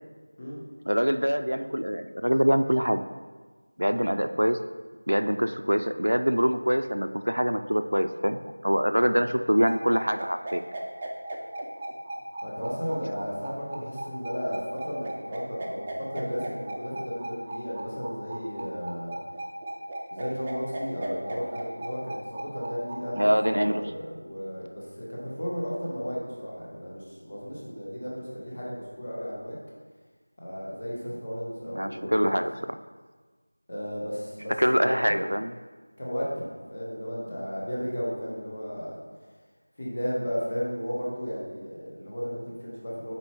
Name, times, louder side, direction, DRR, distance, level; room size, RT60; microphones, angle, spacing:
voice 1, 0.9-3.0 3.8-4.6 5.1-10.6 23.2-23.9 31.7-32.5 34.6-35.5, equal, 80° right, 9 dB, 0.4 m, -24 dB
sound 1, 9.6-23.5, right 1 dB, 15° right, 0.4 m, -37 dB
voice 2, 12.4-19.2 20.1-29.6 30.4-32.4 33.7-35.2 36.0-38.9 39.8-43.1, equal, 35° left, -5 dB, 1.4 m, -34 dB
5.3 x 4.3 x 4.5 m, 1.4 s
figure-of-eight pair, 175°, 0 cm